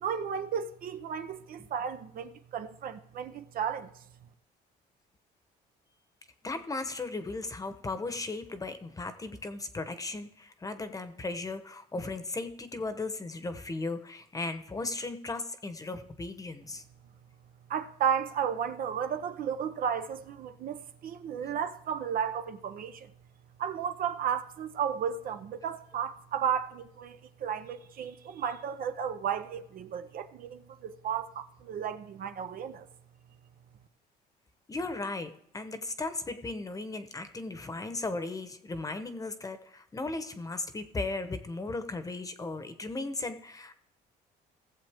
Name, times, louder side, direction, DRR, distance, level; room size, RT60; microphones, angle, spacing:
voice 1, 0.0-3.9 17.7-23.1 23.6-32.9, right 8 dB, 60° right, 0.8 m, -33 dB
voice 2, 6.4-16.8 34.7-43.7, left 3 dB, 20° left, 1.1 m, -36 dB
17.5 x 7.4 x 3.5 m
cardioid pair, 110°, 17 cm